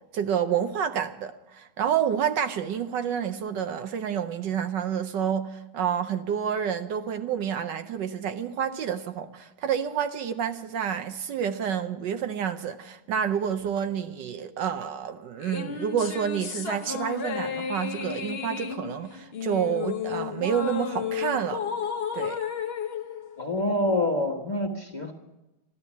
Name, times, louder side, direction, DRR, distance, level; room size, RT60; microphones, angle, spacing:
voice 1, 0.1-21.6 22.1-22.4, right 8 dB, 70° right, 1.3 m, -29 dB
sound 1, 15.4-24.0, left 7 dB, 45° left, 0.8 m, -33 dB
voice 2, 23.4-25.1, left 1 dB, 25° left, 1.4 m, -26 dB
13.0 x 13.0 x 8.2 m
omnidirectional pair, 2.1 m